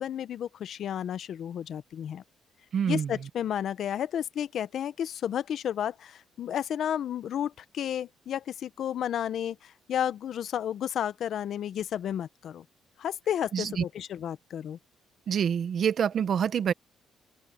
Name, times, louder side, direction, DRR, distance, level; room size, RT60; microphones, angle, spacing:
voice 1, 0.0-2.2 2.9-12.6 13.0-14.8, left 9 dB, 65° left, 0.9 m, -32 dB
voice 2, 2.7-3.1 13.5-13.8 15.3-16.7, right 8 dB, 60° right, 1.2 m, -26 dB
open air
cardioid pair, 90°, 0 cm